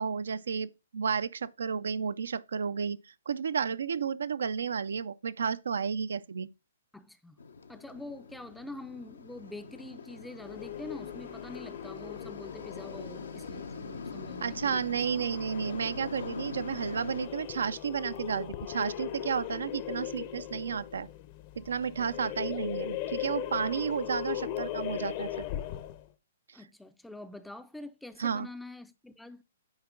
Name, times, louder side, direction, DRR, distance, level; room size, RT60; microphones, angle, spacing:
voice 1, 0.0-3.0 3.3-6.5 14.4-21.1 21.6-25.5 28.2-28.5, right 6 dB, 75° right, 0.4 m, -32 dB
voice 2, 6.9-7.4 7.7-15.0 26.5-29.4, left 2 dB, 5° left, 0.4 m, -45 dB
sound 1, 7.4-17.3, left 5 dB, 85° left, 1.0 m, -43 dB
sound 2, 10.4-26.1, left 12 dB, 40° left, 0.8 m, -39 dB
9.5 x 4.3 x 3.7 m
hypercardioid pair, 140°, 0 cm